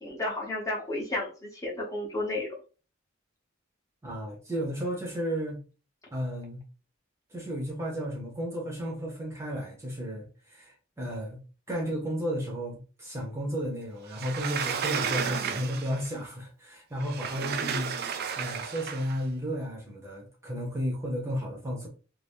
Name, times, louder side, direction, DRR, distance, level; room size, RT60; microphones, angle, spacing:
voice 1, 0.0-2.5, left 2 dB, 15° left, 0.9 m, -32 dB
voice 2, 4.0-5.6 6.1-6.6 7.3-11.4 11.7-17.9 18.4-21.9, equal, 15° right, 0.8 m, -33 dB
Sliding door, 14.1-16.1 17.0-19.2, right 7 dB, 50° right, 0.3 m, -32 dB
2.6 x 2.6 x 3.5 m
head